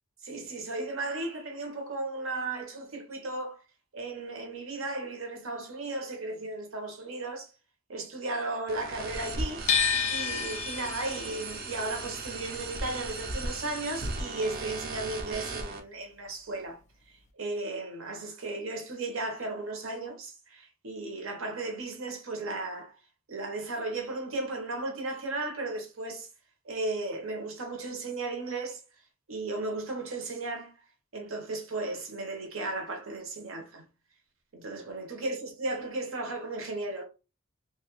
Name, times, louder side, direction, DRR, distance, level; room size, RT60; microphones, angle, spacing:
voice 1, 0.2-3.6 3.9-7.5 7.9-9.7 10.1-16.8 17.1-22.9 23.3-26.3 26.6-28.8 29.3-30.7 31.1-33.9 34.5-37.0, right 2 dB, 80° right, 0.9 m, -35 dB
sound 1, 8.7-15.8, right 2 dB, 45° right, 0.5 m, -37 dB
sound 2, 9.7-15.7 16.0-17.3, left 6 dB, 35° left, 0.3 m, -33 dB
2.7 x 2.4 x 3.0 m
head